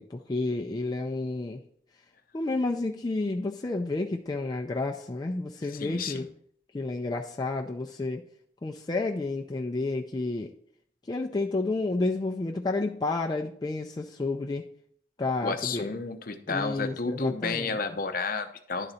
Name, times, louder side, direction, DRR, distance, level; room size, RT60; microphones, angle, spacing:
voice 1, 0.0-1.6 2.3-6.3 6.7-8.2 8.6-10.5 11.1-14.7 15.2-15.9 16.5-17.8, left 2 dB, 20° left, 1 dB, 0.4 m, -30 dB
voice 2, 5.7-6.2 15.4-18.9, left 4 dB, 50° left, 7 dB, 0.7 m, -31 dB
11.0 x 3.9 x 4.2 m, 0.64 s
head